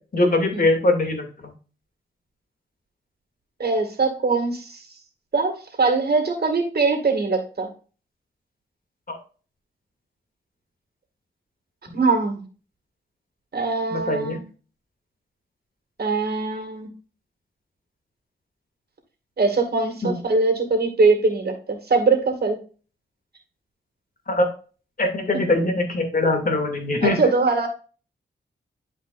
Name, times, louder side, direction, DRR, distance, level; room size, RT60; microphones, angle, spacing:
voice 1, 0.1-1.5 9.1-9.2 13.9-14.4 20.0-20.1 24.3-24.5 25.0-27.3, left 2 dB, 45° left, 3 dB, 2.5 m, -22 dB
voice 2, 3.6-4.8 5.3-7.7 11.9-12.4 13.5-14.4 16.0-16.9 19.4-22.6 27.0-27.7, right 3 dB, 55° right, 4 dB, 2.2 m, -22 dB
11.0 x 4.9 x 2.5 m, 0.36 s
cardioid pair, 65°, 20 cm